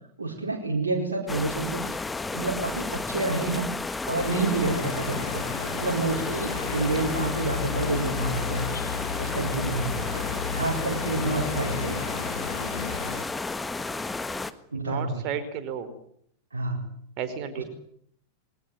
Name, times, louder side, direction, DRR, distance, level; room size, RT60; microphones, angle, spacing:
voice 1, 0.2-2.0 2.3-3.7 4.1-5.5 5.7-8.7 9.2-10.0 10.5-12.0 14.7-15.3 16.5-16.9 17.6-17.7, right 3 dB, 75° right, 0 dB, 4.4 m, -28 dB
sound 1, 1.3-14.5, left 3 dB, 10° left, 1.4 m, -32 dB
sound 2, 4.2-13.2, left 7 dB, 70° left, 1.6 m, -34 dB
voice 2, 14.7-15.9 17.2-17.6, right 8 dB, 40° right, 11 dB, 4.8 m, -33 dB
22.5 x 19.0 x 9.3 m, 0.67 s
figure-of-eight pair, 90°, 0 cm